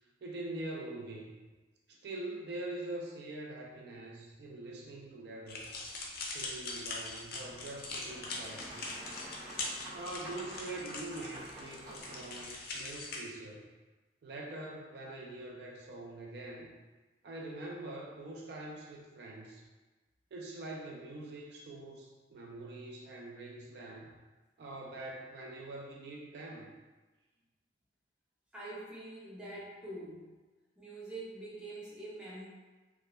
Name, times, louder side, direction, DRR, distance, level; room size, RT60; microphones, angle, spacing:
voice 1, 0.2-1.4 1.9-5.8 6.3-8.9 9.9-13.6 14.2-16.7 17.2-19.6 20.3-24.2 24.6-26.7, right 2 dB, 60° right, -2 dB, 0.4 m, -44 dB
sound 1, 5.5-13.2, left 3 dB, 55° left, 0.4 m, -42 dB
Boat Water vehicle, 7.4-12.4, right 1 dB, 40° right, 0.8 m, -49 dB
voice 2, 28.5-30.3 30.8-32.4, right 2 dB, 5° right, -8 dB, 0.5 m, -45 dB
2.3 x 2.1 x 2.9 m, 1.2 s
head